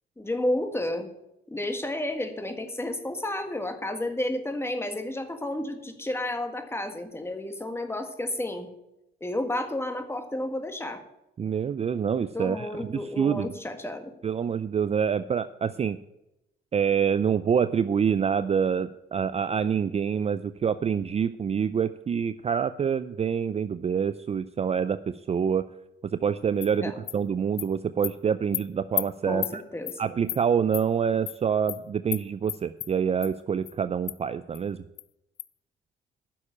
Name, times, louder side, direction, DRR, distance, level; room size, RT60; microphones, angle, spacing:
voice 1, 0.2-1.1 1.5-8.7 9.2-11.0 12.3-14.1 26.8-26.9 29.3-30.0, left 1 dB, 10° left, 6 dB, 1.7 m, -31 dB
voice 2, 11.4-13.5 14.2-16.0 16.7-25.7 26.0-29.6 30.0-34.8, right 7 dB, 30° right, 14 dB, 0.4 m, -26 dB
Animal, 26.6-26.7 27.1-27.2 27.6-27.7 28.0-28.1 28.5-28.6 29.0-29.1 29.4-29.5 29.9-30.0 30.3-30.4 30.7-30.8 31.3-31.4 31.7-31.8 32.1-32.2 32.5-32.9 33.2-33.3 33.7-33.8 34.1-34.2 34.5-34.6 35.0-35.1 35.4-35.5, left 15 dB, 75° left, 0.5 m, -31 dB
9.9 x 6.5 x 8.7 m, 0.87 s
cardioid pair, 90°, 20 cm